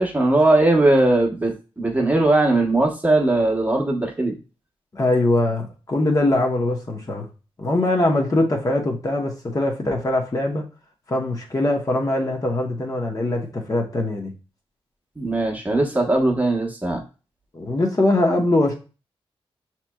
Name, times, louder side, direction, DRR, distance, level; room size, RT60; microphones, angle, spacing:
voice 1, 0.0-4.4 15.2-17.0, right 2 dB, 15° right, 0.9 m, -19 dB
voice 2, 4.9-7.3 7.6-10.6 11.1-14.3 17.5-18.7, left 2 dB, 35° left, 0.8 m, -22 dB
5.8 x 2.9 x 2.2 m
cardioid pair, 90°, 10 cm